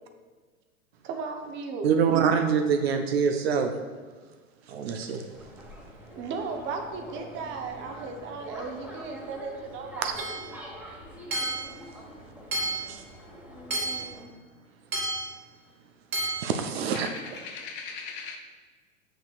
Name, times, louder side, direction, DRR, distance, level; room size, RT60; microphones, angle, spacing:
voice 1, 1.0-1.9 6.2-10.5, right 4 dB, 30° right, 0.8 m, -36 dB
voice 2, 1.8-3.7 4.7-5.2 10.0-10.1 12.9-13.0 16.4-17.1, right 6 dB, 50° right, 0.6 m, -25 dB
sound 1, 5.3-14.2, equal, 5° right, 1.3 m, -45 dB
Hammer / Chink clink, 10.2-10.5 11.3-11.7 12.5-12.9 13.7-14.1 14.9-15.3 16.1-16.5, right 2 dB, 75° right, 1.6 m, -31 dB
voice 3, 16.9-18.4, left 5 dB, 30° left, 0.5 m, -39 dB
6.8 x 6.1 x 2.4 m
figure-of-eight pair, 95°, 40 cm